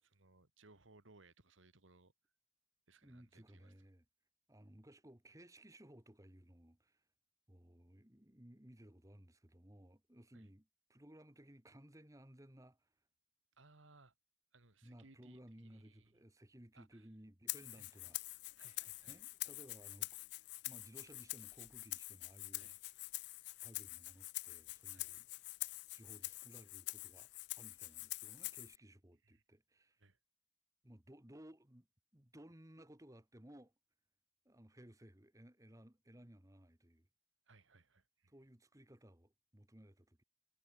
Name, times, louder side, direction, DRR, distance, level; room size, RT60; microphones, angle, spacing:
voice 1, 0.0-2.1 2.9-3.7 10.3-10.5 13.6-14.1 14.5-16.1 16.7-17.1 17.7-18.0 18.6-19.2 22.5-22.8 24.9-25.2 29.2-29.4 30.0-30.2 37.5-38.3, right 3 dB, 80° right, 2.3 m, -65 dB
voice 2, 3.0-4.1 4.5-7.0 7.5-12.9 14.8-18.4 19.0-20.2 20.6-22.7 23.6-25.3 25.9-27.3 27.6-30.0 30.8-31.9 32.1-33.7 34.5-37.1 38.3-40.2, right 1 dB, 15° right, 1.7 m, -59 dB
Rattle (instrument), 17.5-28.8, left 20 dB, 55° left, 0.4 m, -46 dB
head